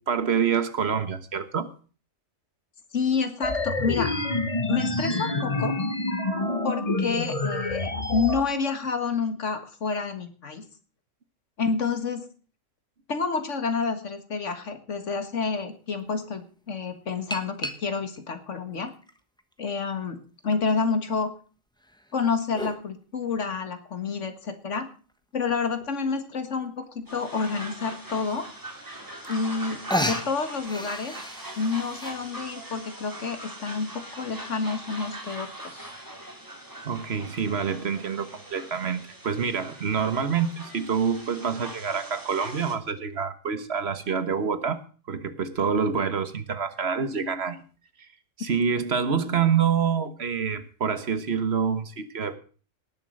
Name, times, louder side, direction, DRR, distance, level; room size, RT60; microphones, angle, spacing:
voice 1, 0.1-1.7 7.9-8.1 36.8-44.8 45.1-47.6 48.4-52.4, right 6 dB, 55° right, 11 dB, 1.5 m, -27 dB
voice 2, 2.9-4.1 4.7-5.8 6.6-10.6 11.6-12.3 13.1-18.9 19.6-21.3 22.1-24.9 25.3-28.5 29.3-31.2 31.6-35.9, left 5 dB, 70° left, 8 dB, 2.0 m, -29 dB
sound 1, 3.4-8.4, left 2 dB, 30° left, 1.4 m, -27 dB
sound 2, 15.6-15.7 17.3-18.2 18.9-19.9 20.5-20.6 21.8-22.8 24.5-24.6 25.1-25.2 25.4-25.5 25.8-26.1 27.1-27.2 27.7-27.8 29.0-29.1 29.2-29.6 29.9-32.2, equal, 5° left, 1.1 m, -33 dB
sound 3, 27.1-42.8, right 1 dB, 15° right, 2.5 m, -41 dB
18.5 x 7.5 x 6.5 m, 0.40 s
omnidirectional pair, 1.3 m